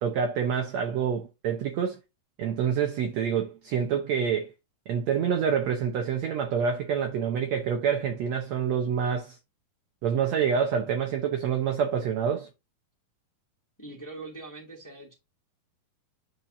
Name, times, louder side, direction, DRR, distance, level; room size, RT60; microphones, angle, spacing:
voice 1, 0.0-2.0 2.4-4.5 4.9-9.4 10.0-12.5, right 7 dB, 70° right, 1.7 m, -27 dB
voice 2, 13.8-15.1, right 2 dB, 5° left, 1.8 m, -42 dB
10.0 x 4.7 x 2.7 m
omnidirectional pair, 4.0 m